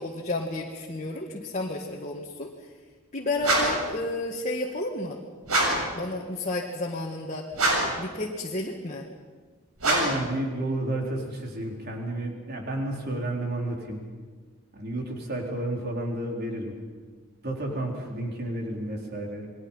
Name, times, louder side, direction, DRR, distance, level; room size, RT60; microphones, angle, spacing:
voice 1, 0.0-2.5 3.1-5.2 6.0-7.5 8.0-9.1, left 2 dB, 35° left, -1 dB, 1.9 m, -31 dB
sound 1, 3.4-3.9 5.4-5.9 7.5-8.0 9.8-10.3, right 2 dB, 90° right, 7.4 m, -24 dB
voice 2, 9.8-14.0 14.7-16.8 17.4-19.5, right 1 dB, 45° right, 1 dB, 4.0 m, -31 dB
29.5 x 21.5 x 5.7 m, 1.5 s
head